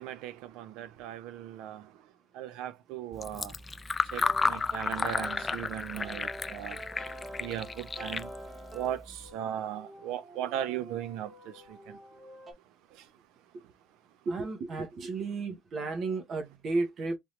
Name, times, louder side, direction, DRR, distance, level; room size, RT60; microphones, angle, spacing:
voice 1, 0.0-1.9 2.3-3.5 4.1-6.8 7.4-8.3 8.7-12.0, right 11 dB, 80° right, 0.5 m, -37 dB
Fill (with liquid), 3.1-9.3, left 4 dB, 25° left, 0.3 m, -33 dB
sound 1, 4.1-12.5, right 1 dB, 25° right, 1.2 m, -47 dB
voice 2, 14.2-17.2, right 3 dB, 50° right, 1.0 m, -33 dB
3.5 x 2.8 x 3.2 m
cardioid pair, 105°, 0 cm